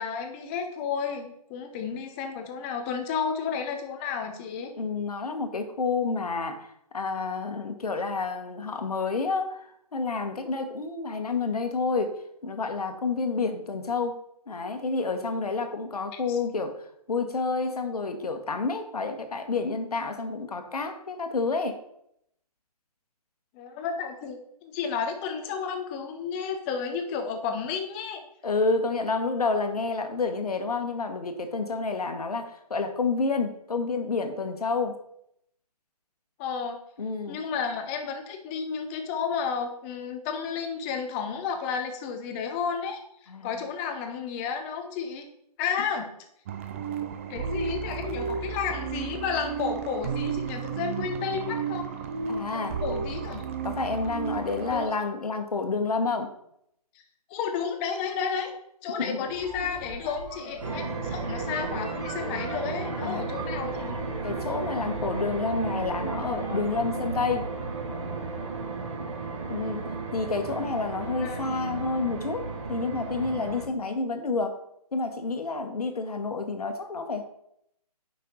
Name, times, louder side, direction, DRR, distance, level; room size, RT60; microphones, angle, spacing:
voice 1, 0.0-4.7 16.1-16.4 23.5-28.2 36.4-36.8 37.3-45.3 45.6-46.1 47.3-51.9 52.5-53.4 54.7-54.9 57.3-58.5 58.8-64.0 71.2-71.5, left 6 dB, 20° left, 5 dB, 0.8 m, -32 dB
voice 2, 4.8-6.7 6.9-12.1 12.4-14.2 14.5-16.7 17.1-21.8 28.4-34.9 37.0-37.4 43.3-43.5 52.3-52.8 53.6-56.3 59.0-59.2 59.6-59.8 63.0-63.2 64.2-67.4 69.5-69.8 70.1-74.6 74.9-77.2, left 4 dB, 70° left, 6 dB, 1.4 m, -29 dB
sound 1, 46.5-54.9, right 6 dB, 20° right, 0.4 m, -33 dB
sound 2, 59.1-67.0, right 1 dB, 85° right, 2.8 m, -41 dB
sound 3, 60.6-73.7, right 4 dB, 50° right, 1.9 m, -34 dB
9.3 x 5.8 x 3.8 m, 0.74 s
figure-of-eight pair, 145°, 20 cm